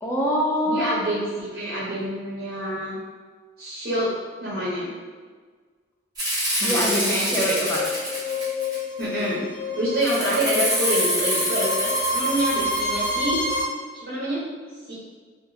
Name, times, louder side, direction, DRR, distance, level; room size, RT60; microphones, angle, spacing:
voice 1, 0.0-1.0 6.6-7.8, equal, 10° left, -4 dB, 0.3 m, -24 dB
voice 2, 0.7-3.0 3.6-4.1 4.4-4.9 6.6-7.5 9.0-9.4 9.8-13.4 13.9-14.4 14.9-15.0, right 1 dB, 65° right, -7 dB, 0.7 m, -27 dB
Rattle (instrument), 6.2-9.0 10.0-13.2, equal, 20° right, 0.7 m, -26 dB
sound 1, 7.6-13.6, left 2 dB, 85° left, 0.7 m, -28 dB
2.8 x 2.4 x 2.6 m, 1.5 s
head